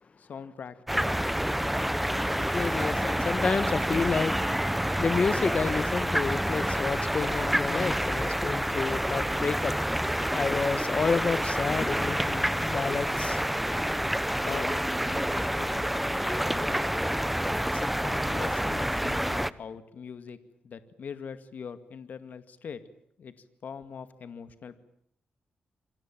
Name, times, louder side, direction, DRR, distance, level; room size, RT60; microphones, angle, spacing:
voice 1, 0.2-1.2 14.4-16.0 16.2-16.8 17.7-22.8 23.2-23.3 23.6-24.8, left 6 dB, 65° left, 2.3 m, -42 dB
sound 1, 0.9-19.5, equal, 5° right, 1.0 m, -28 dB
voice 2, 2.4-4.4 5.0-9.8 10.3-13.4, left 5 dB, 40° left, 1.8 m, -30 dB
27.5 x 24.5 x 7.6 m
cardioid pair, 110°, 3 cm